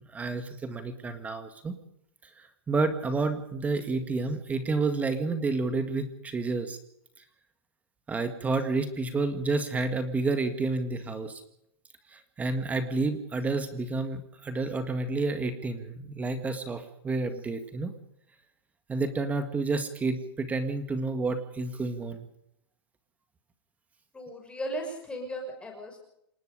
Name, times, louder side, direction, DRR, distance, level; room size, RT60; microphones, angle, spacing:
voice 1, 0.1-1.7 2.4-6.8 8.1-11.4 12.1-17.9 18.9-22.3, right 3 dB, 10° right, 8 dB, 1.9 m, -30 dB
voice 2, 24.1-26.0, equal, 10° left, 2 dB, 6.1 m, -36 dB
28.0 x 19.0 x 5.1 m, 0.75 s
hypercardioid pair, 155°, 14 cm